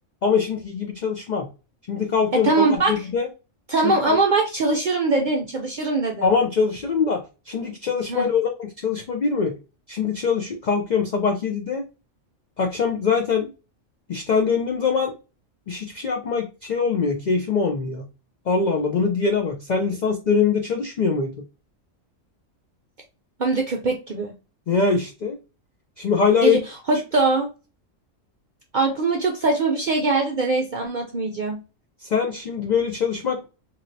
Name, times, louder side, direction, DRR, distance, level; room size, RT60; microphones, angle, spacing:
voice 1, 0.2-1.5 1.9-3.3 3.8-4.2 6.2-9.5 9.9-11.8 12.6-13.5 14.1-15.1 15.7-18.0 18.5-21.3 24.7-25.4 26.0-26.6 32.0-33.5, left 5 dB, 80° left, 3 dB, 0.4 m, -23 dB
voice 2, 2.3-3.0 3.7-6.3 8.1-8.3 23.4-24.3 26.4-26.6 26.9-27.5 28.7-31.6, right 3 dB, 60° right, 1 dB, 0.5 m, -22 dB
3.0 x 2.7 x 2.6 m, 0.31 s
omnidirectional pair, 1.4 m